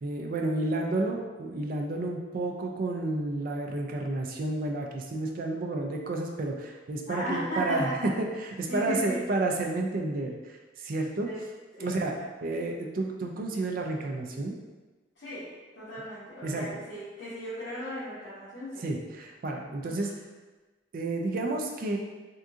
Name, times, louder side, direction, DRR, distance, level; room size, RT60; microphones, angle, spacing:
voice 1, 0.0-7.9 8.2-11.3 11.8-12.2 12.4-14.5 16.4-16.7 18.8-20.1 20.9-22.0, right 2 dB, 50° right, 1 dB, 0.4 m, -31 dB
voice 2, 7.1-8.1 8.7-9.3 11.2-11.4 11.8-12.0 15.2-18.9 19.8-20.1, equal, 85° left, -12 dB, 0.9 m, -36 dB
3.5 x 2.6 x 2.4 m, 1.2 s
head